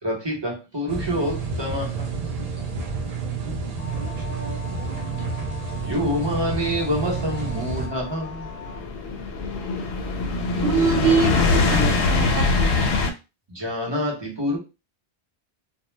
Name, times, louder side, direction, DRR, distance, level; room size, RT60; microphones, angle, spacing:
voice 1, 0.0-2.3 5.8-8.5 13.5-14.6, equal, 25° right, 0.8 m, -27 dB
sound 1, 0.9-7.9, right 4 dB, 45° right, 0.5 m, -30 dB
voice 2, 3.2-5.4, right 2 dB, 65° right, 1.2 m, -43 dB
sound 2, 3.8-8.8, left 6 dB, 50° left, 0.5 m, -42 dB
sound 3, 6.1-13.1, left 3 dB, 90° left, 0.8 m, -23 dB
voice 3, 10.6-12.8, right 6 dB, 85° right, 0.9 m, -23 dB
2.2 x 2.0 x 3.1 m
omnidirectional pair, 1.1 m